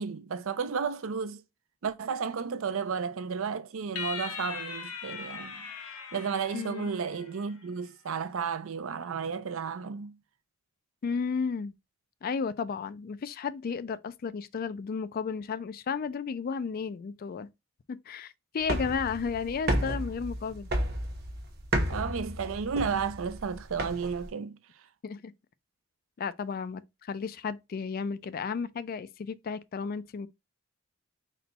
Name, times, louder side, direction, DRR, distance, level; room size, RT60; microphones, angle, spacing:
voice 1, 0.0-1.4 1.8-5.6 6.1-10.1 21.9-24.6, right 6 dB, 70° right, 0.5 m, -33 dB
sound 1, 4.0-7.5, left 6 dB, 85° left, 0.8 m, -40 dB
voice 2, 11.0-11.7 12.2-17.5 17.9-20.7 25.0-25.3 26.2-30.3, left 5 dB, 45° left, 0.3 m, -33 dB
sound 2, 18.6-24.3, right 1 dB, 50° right, 0.9 m, -32 dB
4.2 x 2.2 x 4.0 m
head